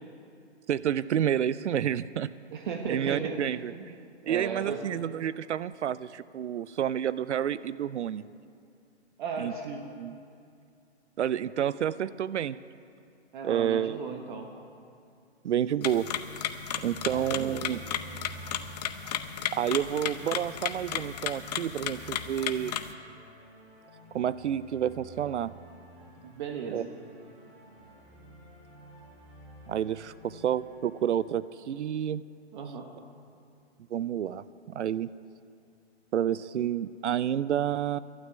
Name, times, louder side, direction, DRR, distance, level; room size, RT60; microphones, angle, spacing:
voice 1, 0.7-2.3 2.9-3.7 4.3-8.2 9.4-9.5 9.9-10.2 11.2-12.6 13.4-14.0 15.4-16.1 16.8-17.8 19.5-22.8 24.1-25.5 26.7-26.8 29.7-32.2 33.9-35.1 36.1-38.0, right 10 dB, 80° right, 17 dB, 0.5 m, -29 dB
voice 2, 2.5-3.4 3.7-3.9 4.2-4.8 9.2-9.8 13.3-14.5 17.1-17.7 26.2-26.9 32.5-32.9, right 6 dB, 45° right, 3 dB, 1.3 m, -36 dB
sound 1, 15.8-22.9, left 9 dB, 35° left, 0.7 m, -34 dB
sound 2, 16.8-31.3, right 2 dB, 20° right, 3.8 m, -51 dB
12.0 x 9.3 x 9.5 m, 2.4 s
hypercardioid pair, 140°, 34 cm